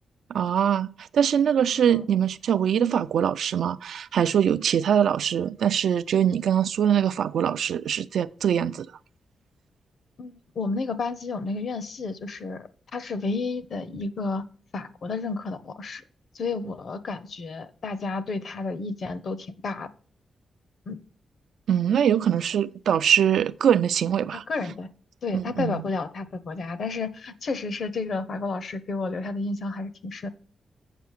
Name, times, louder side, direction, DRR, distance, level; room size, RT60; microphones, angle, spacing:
voice 1, 0.3-8.9 21.7-24.4 25.3-25.8, right 9 dB, 80° right, 0.4 m, -23 dB
voice 2, 10.2-14.4 14.7-16.0 16.3-19.9 20.9-21.0 24.5-24.9 25.2-30.3, left 3 dB, 55° left, 0.8 m, -31 dB
8.1 x 5.6 x 6.5 m
wide cardioid pair, 130°, 0 cm